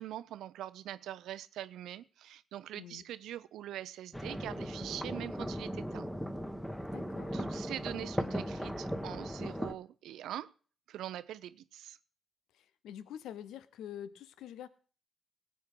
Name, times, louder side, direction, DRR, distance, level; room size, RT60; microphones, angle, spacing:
voice 1, 0.0-6.1 7.3-10.5 10.9-12.0, right 12 dB, 75° right, 16 dB, 0.6 m, -43 dB
sound 1, 4.1-9.7, equal, 5° left, 1.5 m, -37 dB
voice 2, 6.9-7.4 12.5-14.7, left 10 dB, 75° left, 15 dB, 0.7 m, -46 dB
19.0 x 8.4 x 3.9 m, 0.40 s
hypercardioid pair, 45°, 0 cm